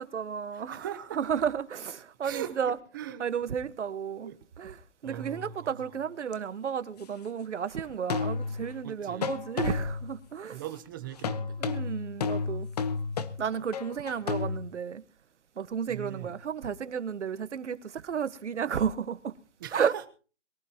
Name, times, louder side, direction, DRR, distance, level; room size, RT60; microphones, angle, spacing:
voice 1, 0.0-0.8 1.1-2.8 3.2-4.8 5.0-10.6 11.6-12.7 13.4-15.0 15.6-19.3 19.7-19.9, right 7 dB, 75° right, 1.4 m, -32 dB
voice 2, 0.5-1.2 2.2-3.2 4.2-4.4 5.0-6.0 8.8-9.4 10.5-12.0 15.9-16.4 19.6-20.1, right 10 dB, 20° right, 0.9 m, -40 dB
sound 1, 6.3-6.4 8.1-8.8 9.2-10.1 11.2-14.6, left 5 dB, 35° left, 1.1 m, -31 dB
23.0 x 14.0 x 2.9 m
hypercardioid pair, 170°, 35 cm